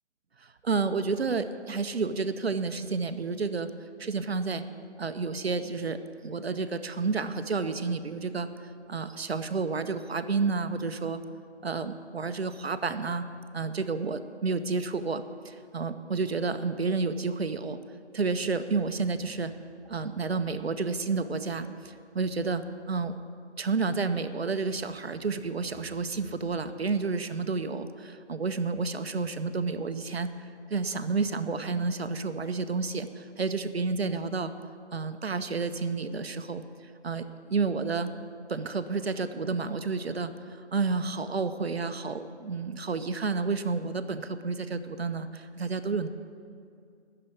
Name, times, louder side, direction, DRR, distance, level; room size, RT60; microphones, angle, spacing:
voice 1, 0.4-3.7 4.0-4.7 5.0-6.0 6.2-11.2 11.6-13.2 13.5-17.8 18.1-19.5 19.9-23.1 23.6-34.5 34.9-36.6 37.0-38.1 38.5-46.1, right 4 dB, 60° right, 10 dB, 0.7 m, -30 dB
10.0 x 6.7 x 9.0 m, 2.4 s
figure-of-eight pair, 165°, 35 cm